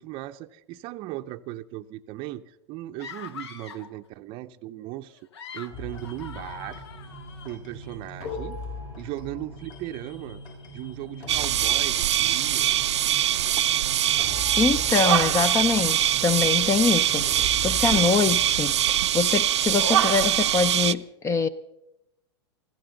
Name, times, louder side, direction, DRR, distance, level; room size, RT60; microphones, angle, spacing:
voice 1, 0.0-5.2 5.5-6.8 7.4-8.6 9.0-10.4 10.7-12.7 17.8-18.3, right 15 dB, 40° right, 0.6 m, -37 dB
sound 1, 3.0-4.0 5.1-7.5, left 6 dB, 70° left, 1.3 m, -42 dB
sound 2, 5.7-18.9, left 2 dB, 50° left, 6.3 m, -40 dB
sound 3, 11.3-20.9, right 12 dB, 80° right, 0.5 m, -23 dB
voice 2, 14.6-21.5, left 5 dB, 20° left, 0.6 m, -24 dB
21.0 x 15.0 x 3.9 m
hypercardioid pair, 115°, 14 cm